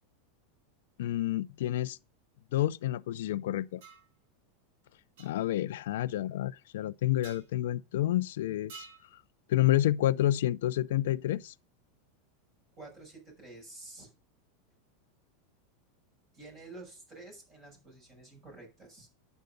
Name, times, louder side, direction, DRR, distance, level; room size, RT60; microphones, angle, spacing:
voice 1, 1.0-2.0 2.5-3.8 5.2-9.2 9.5-11.5, left 14 dB, 70° left, 0.5 m, -29 dB
sound 1, 3.8-4.1 5.2-5.3 7.2-7.5 8.7-9.1, right 5 dB, 65° right, 4.4 m, -49 dB
voice 2, 12.7-14.1 16.3-19.1, right 2 dB, 20° right, 6.1 m, -49 dB
10.5 x 8.1 x 5.1 m
supercardioid pair, 180°, 0 cm